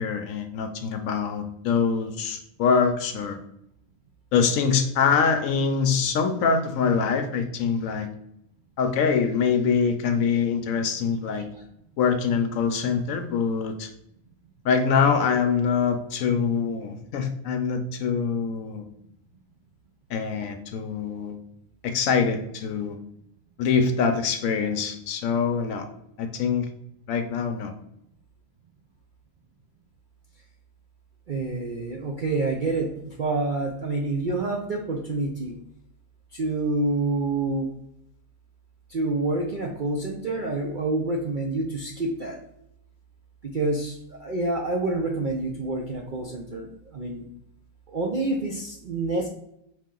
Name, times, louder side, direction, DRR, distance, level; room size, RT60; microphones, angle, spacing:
voice 1, 0.0-3.4 4.3-8.1 8.8-11.5 12.0-13.9 14.6-18.8 20.1-21.4 21.8-23.0 23.6-25.9 26.2-26.7 27.1-27.7, left 6 dB, 70° left, 7 dB, 1.0 m, -24 dB
voice 2, 31.3-35.5 36.3-37.7 38.9-42.4 43.4-47.3 47.9-49.3, right 2 dB, 60° right, 0 dB, 0.5 m, -27 dB
4.9 x 2.8 x 3.7 m, 0.77 s
omnidirectional pair, 1.5 m